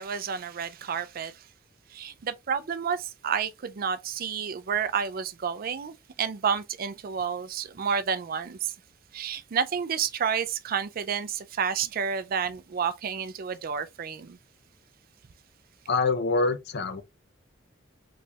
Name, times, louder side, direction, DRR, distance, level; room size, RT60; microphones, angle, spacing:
voice 1, 0.0-1.4 1.9-8.7 9.1-14.4, right 7 dB, 45° right, 0.4 m, -30 dB
voice 2, 15.9-17.0, left 3 dB, 55° left, 0.6 m, -25 dB
4.3 x 3.2 x 2.3 m
head